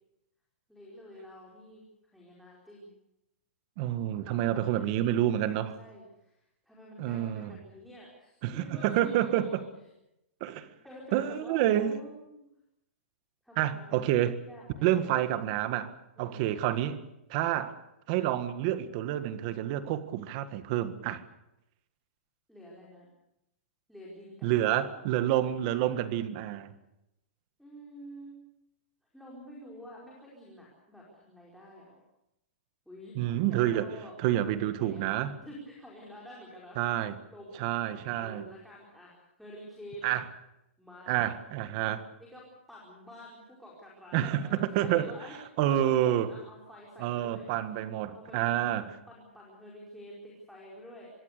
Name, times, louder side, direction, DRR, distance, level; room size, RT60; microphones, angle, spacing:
voice 1, 0.7-2.9 4.2-4.8 5.2-9.6 10.8-12.5 13.4-14.0 14.5-15.1 16.2-16.5 22.5-23.1 23.9-25.0 27.6-28.4 29.1-32.0 32.8-33.2 33.5-34.1 34.4-37.9 38.1-40.1 40.8-41.1 42.1-45.4 45.6-47.5 48.1-51.1, equal, ahead, 4.8 m, -49 dB
voice 2, 3.8-5.8 7.0-7.6 8.4-9.6 10.4-10.7 11.1-12.0 13.6-14.4 14.8-15.9 16.2-17.0 17.3-17.7 18.1-21.2 24.4-26.7 33.1-35.3 36.8-37.2 37.6-38.4 40.0-40.3 41.1-42.1 44.1-45.1 45.6-46.3 47.0-48.9, right 12 dB, 35° right, 1.7 m, -28 dB
25.5 x 22.0 x 6.8 m
hypercardioid pair, 165°, 7 cm